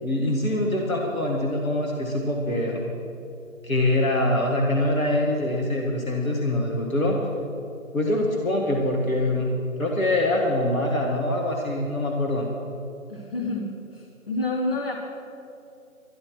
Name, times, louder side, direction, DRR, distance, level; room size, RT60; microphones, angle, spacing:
voice 1, 0.0-2.8 3.6-7.2 7.9-9.5 9.8-12.5, left 1 dB, 80° left, 0 dB, 2.0 m, -24 dB
voice 2, 13.1-15.0, left 2 dB, 45° left, 0 dB, 1.3 m, -29 dB
13.0 x 11.0 x 6.2 m, 2.7 s
figure-of-eight pair, 170°, 41 cm